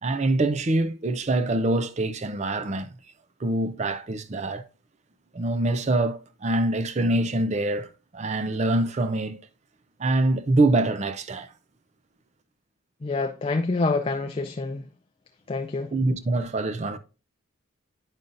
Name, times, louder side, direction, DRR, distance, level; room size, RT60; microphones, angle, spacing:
voice 1, 0.0-2.9 3.4-4.6 5.3-7.9 8.1-9.4 10.0-11.5 15.9-17.0, right 2 dB, 35° right, 0.5 m, -24 dB
voice 2, 13.0-14.9 15.5-15.9, left 3 dB, 30° left, 0.4 m, -27 dB
9.0 x 5.4 x 2.5 m
head